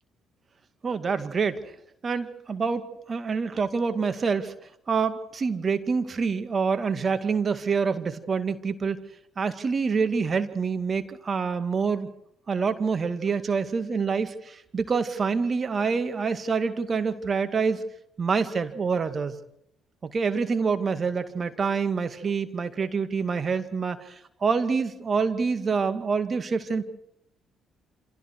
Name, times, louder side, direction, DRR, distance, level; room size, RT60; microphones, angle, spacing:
voice 1, 0.8-1.6 2.0-4.5 4.9-9.0 9.4-12.1 12.5-17.8 18.2-19.4 20.0-26.8, right 5 dB, 40° right, 9 dB, 2.2 m, -26 dB
28.5 x 27.0 x 4.8 m, 0.76 s
hypercardioid pair, 50°, 0 cm